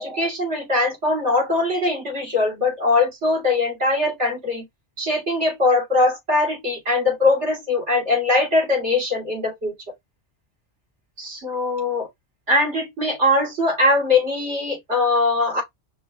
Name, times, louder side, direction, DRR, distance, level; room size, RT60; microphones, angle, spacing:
voice 1, 0.0-4.7 5.0-9.7 11.2-12.1 12.5-15.6, left 2 dB, 75° right, 4.2 m, -21 dB
5.9 x 2.4 x 3.4 m
omnidirectional pair, 1.2 m